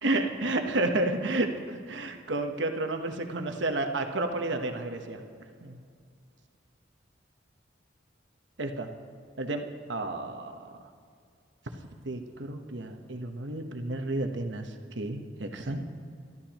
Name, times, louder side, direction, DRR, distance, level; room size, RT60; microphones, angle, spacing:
voice 1, 0.0-5.2 5.6-5.8 8.6-8.9 9.4-9.6 9.9-10.8 12.0-15.8, right 2 dB, 75° right, 5 dB, 1.1 m, -31 dB
23.0 x 12.5 x 3.0 m, 2.2 s
head